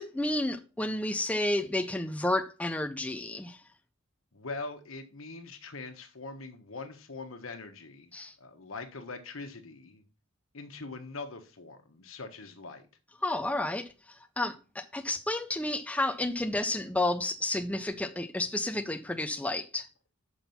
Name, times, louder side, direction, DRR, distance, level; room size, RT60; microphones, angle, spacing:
voice 1, 0.0-3.6 8.1-8.3 13.2-19.9, left 1 dB, 5° left, 0.5 m, -31 dB
voice 2, 4.3-8.1 8.4-10.0 10.5-12.9, left 3 dB, 75° left, 1.3 m, -42 dB
6.1 x 6.0 x 5.5 m
head